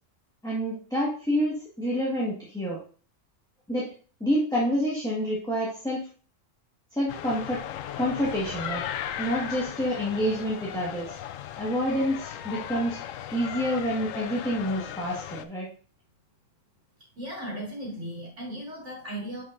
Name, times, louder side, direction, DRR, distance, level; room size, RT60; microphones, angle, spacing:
voice 1, 0.4-2.8 3.7-3.9 4.2-6.1 6.9-7.6 8.0-8.8 9.2-11.2 11.6-13.0 13.3-15.7, equal, 5° left, -6 dB, 1.5 m, -28 dB
sound 1, 7.1-15.5, left 10 dB, 90° left, 1.0 m, -37 dB
voice 2, 17.2-19.4, right 1 dB, 65° right, -4 dB, 2.9 m, -36 dB
9.5 x 5.1 x 2.6 m, 0.40 s
omnidirectional pair, 1.3 m